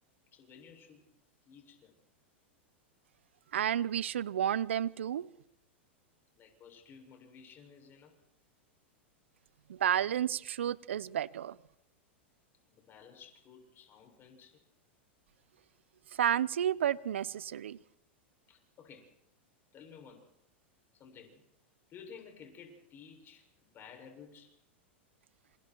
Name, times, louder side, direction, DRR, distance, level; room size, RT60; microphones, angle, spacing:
voice 1, 0.3-1.1 1.5-1.9 6.3-8.2 12.6-14.6 18.5-19.1 19.7-20.3 20.9-21.4 21.9-24.6, left 6 dB, 35° left, 7.2 m, -54 dB
voice 2, 3.5-5.3 9.7-11.6 16.2-17.8, right 10 dB, 80° right, 0.9 m, -31 dB
27.5 x 26.0 x 4.7 m
hypercardioid pair, 105°, 6 cm